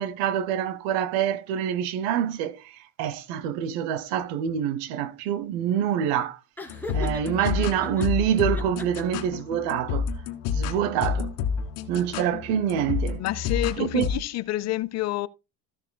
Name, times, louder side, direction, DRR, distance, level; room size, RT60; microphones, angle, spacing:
voice 1, 0.0-2.6 3.0-6.4 6.9-10.1 10.5-11.3 11.9-13.2 13.8-14.1, right 9 dB, 85° right, 1.0 m, -26 dB
Laughter, 6.6-8.1 8.5-9.4, left 2 dB, 5° left, 1.9 m, -38 dB
sound 1, 6.7-14.1, left 6 dB, 85° left, 1.5 m, -30 dB
voice 2, 13.2-15.3, left 15 dB, 45° left, 0.5 m, -28 dB
14.5 x 7.1 x 2.2 m
cardioid pair, 130°, 37 cm